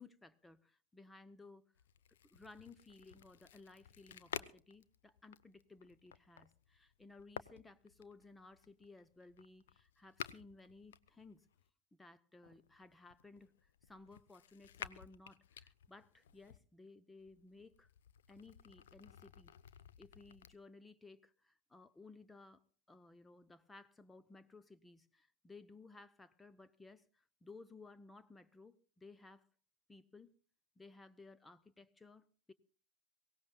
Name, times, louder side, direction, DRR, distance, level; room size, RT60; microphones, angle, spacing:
voice 1, 0.0-1.6 2.3-11.5 12.0-17.9 18.3-19.5 20.0-22.6 22.9-29.5 29.9-30.3 30.8-32.5, left 3 dB, 10° left, 0.6 m, -58 dB
sound 1, 1.7-11.7 12.4-16.6 17.2-20.5, left 10 dB, 60° left, 0.6 m, -53 dB
23.0 x 17.5 x 2.3 m
figure-of-eight pair, 90°, 0 cm